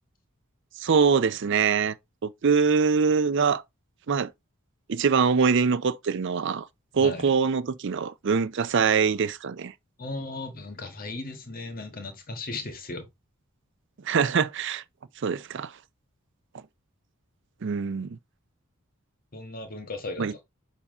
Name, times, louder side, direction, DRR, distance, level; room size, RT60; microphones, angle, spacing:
voice 1, 0.8-2.0 2.2-3.6 4.1-4.3 4.9-6.7 6.9-9.7 14.1-14.8 15.2-15.7 17.6-18.2 20.2-20.3, right 5 dB, 55° right, 0.5 m, -23 dB
voice 2, 10.0-13.1 19.3-20.4, left 2 dB, 40° left, 1.5 m, -36 dB
7.1 x 2.7 x 5.4 m
head